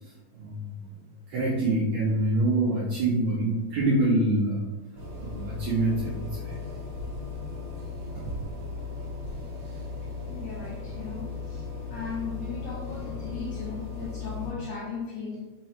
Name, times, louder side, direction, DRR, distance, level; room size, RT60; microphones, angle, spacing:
voice 1, 1.3-4.7 5.2-6.6 8.2-8.3, right 2 dB, 80° right, -6 dB, 1.7 m, -25 dB
sound 1, 4.9-14.5, left 4 dB, 60° right, 1.3 m, -36 dB
voice 2, 10.3-15.4, left 5 dB, 80° left, -5 dB, 1.7 m, -37 dB
5.6 x 2.2 x 4.2 m, 1.2 s
omnidirectional pair, 4.2 m